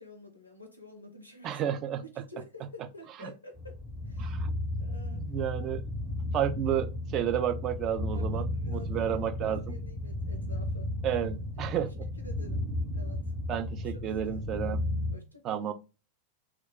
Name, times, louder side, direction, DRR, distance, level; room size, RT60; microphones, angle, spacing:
voice 1, 0.0-1.7 2.0-3.8 4.0-4.4 4.8-5.2 8.1-10.9 12.2-13.3 13.8-14.4 15.1-15.6, left 2 dB, 80° left, 4 dB, 0.4 m, -49 dB
voice 2, 1.4-2.2 2.6-2.7 3.2-3.3 4.2-4.5 5.1-5.8 6.3-9.8 11.0-12.1 13.5-14.8 15.4-15.7, right 10 dB, 35° right, 9 dB, 0.3 m, -31 dB
sound 1, 3.6-15.1, left 1 dB, 10° right, 0.7 m, -34 dB
2.3 x 2.2 x 3.4 m, 0.32 s
figure-of-eight pair, 90°, 0 cm